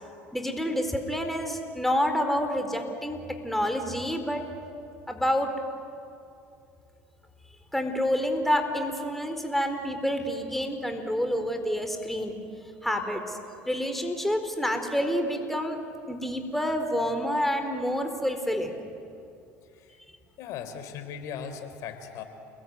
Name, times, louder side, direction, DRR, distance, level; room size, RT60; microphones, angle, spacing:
voice 1, 0.3-4.4 5.1-5.5 7.7-12.4 12.8-13.4 13.7-15.8 16.1-18.8, equal, 5° left, 5 dB, 4.2 m, -28 dB
voice 2, 20.4-22.2, left 7 dB, 65° left, 8 dB, 3.8 m, -38 dB
30.0 x 21.0 x 9.7 m, 2.5 s
supercardioid pair, 85°, 6 cm